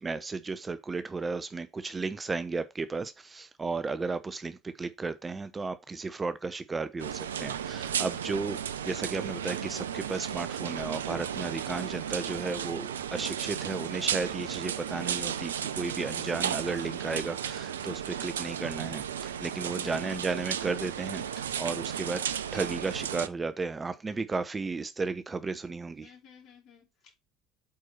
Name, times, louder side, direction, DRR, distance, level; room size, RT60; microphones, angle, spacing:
voice 1, 0.0-8.6 8.8-22.2 22.5-26.1, right 4 dB, 20° right, 0.7 m, -34 dB
sound 1, 7.0-23.3, right 8 dB, 75° right, 0.4 m, -34 dB
voice 2, 16.0-16.5 19.8-20.3 26.0-27.1, left 5 dB, 50° left, 3.5 m, -53 dB
8.5 x 4.5 x 4.2 m
figure-of-eight pair, 60°, 0 cm